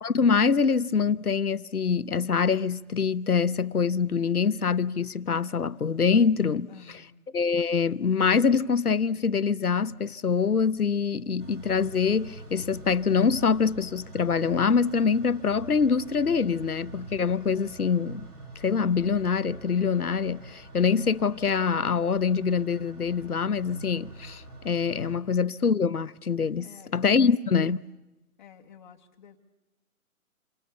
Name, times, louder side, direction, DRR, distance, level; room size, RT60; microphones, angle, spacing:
voice 1, 0.0-6.7 7.3-18.3 18.6-27.8, left 5 dB, 80° left, 1.0 m, -25 dB
voice 2, 6.7-7.3 26.6-27.3 28.4-29.4, left 7 dB, 30° left, 1.9 m, -51 dB
sound 1, 11.4-25.2, right 2 dB, 80° right, 5.8 m, -45 dB
28.5 x 25.5 x 7.0 m
figure-of-eight pair, 145°, 44 cm